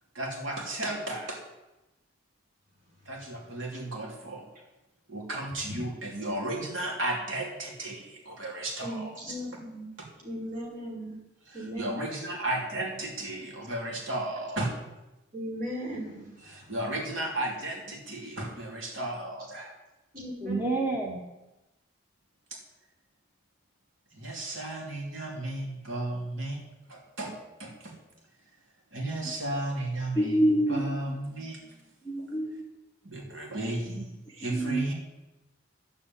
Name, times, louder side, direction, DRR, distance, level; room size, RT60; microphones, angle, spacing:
voice 1, 0.1-1.4 3.1-4.4 5.1-9.2 10.0-10.1 11.5-14.7 16.4-19.7 22.5-22.6 24.1-26.6 26.9-27.3 27.6-27.9 28.9-30.4 30.7-31.6 33.0-34.0 34.3-34.9, right 1 dB, 90° right, 0 dB, 3.0 m, -34 dB
voice 2, 8.8-9.9 10.2-11.2 11.5-12.2 15.3-16.8 20.1-20.8, equal, 45° right, -3 dB, 5.4 m, -38 dB
voice 3, 20.4-21.2 30.1-31.1 32.0-32.5 33.9-34.0 34.5-34.9, right 1 dB, 10° right, -1 dB, 1.5 m, -27 dB
12.0 x 7.5 x 9.0 m, 1.0 s
head